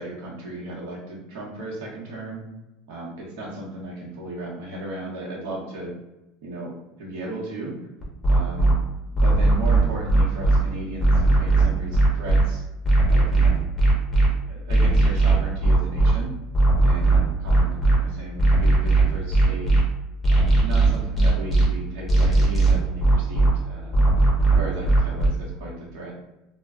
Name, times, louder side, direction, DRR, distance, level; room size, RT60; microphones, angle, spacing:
voice 1, 0.0-2.4 2.9-5.9 6.4-6.7 7.0-7.7 8.3-8.8 9.1-12.6 13.1-13.6 14.5-16.3 16.8-19.7 20.3-24.0 24.5-26.1, right 1 dB, 75° right, -3 dB, 1.0 m, -35 dB
sound 1, 8.0-8.7 9.1-10.6 11.0-12.4 12.8-14.3 14.7-16.1 16.5-18.0 18.4-19.8 20.2-21.6 22.1-23.5 23.9-25.3, right 2 dB, 5° left, 0.7 m, -17 dB
2.2 x 2.2 x 3.5 m, 0.94 s
supercardioid pair, 145°, 0 cm